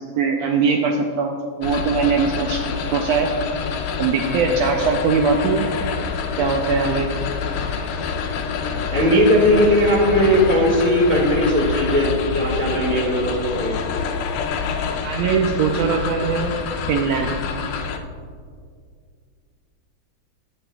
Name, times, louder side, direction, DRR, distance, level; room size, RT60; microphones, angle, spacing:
voice 1, 0.0-2.6 2.9-3.3 4.0-5.6 6.4-7.1 15.0-16.5 16.9-17.3, right 5 dB, 80° right, 2 dB, 1.6 m, -21 dB
sound 1, 1.6-18.0, left 6 dB, 85° left, 2.1 m, -27 dB
voice 2, 8.9-13.8, equal, 5° left, -3 dB, 0.8 m, -18 dB
18.5 x 7.0 x 2.3 m, 2.1 s
omnidirectional pair, 3.5 m